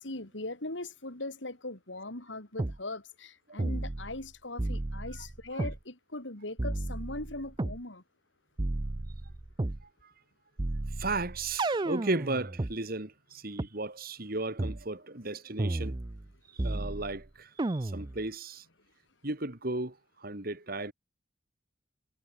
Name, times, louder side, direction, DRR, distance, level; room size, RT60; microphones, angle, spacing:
voice 1, 0.0-8.0 16.8-16.9, left 2 dB, 80° left, 4.2 m, -40 dB
sound 1, 2.6-2.8 3.6-4.3 4.6-5.8 6.6-7.8 8.6-9.8 10.6-12.7 13.6-13.7 14.6-14.8 15.6-16.3 16.6-17.2 17.6-18.2, right 2 dB, 25° right, 0.5 m, -33 dB
voice 2, 10.9-15.9 16.5-18.6 19.2-20.9, right 2 dB, 55° right, 2.8 m, -35 dB
head